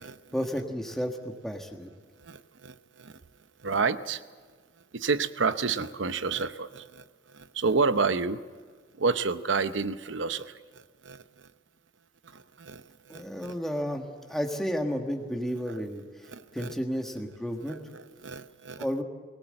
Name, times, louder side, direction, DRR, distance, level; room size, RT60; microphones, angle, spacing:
voice 1, 0.3-1.9 13.1-16.0 16.5-17.8 18.8-19.0, equal, ahead, 3 dB, 1.5 m, -32 dB
voice 2, 2.2-3.1 3.6-4.2 4.9-7.0 7.3-8.4 9.0-10.5 11.0-11.2 12.3-12.8 13.1-13.5 16.3-16.7 17.7-18.8, right 4 dB, 65° right, 12 dB, 0.8 m, -29 dB
23.5 x 17.5 x 7.7 m, 1.6 s
head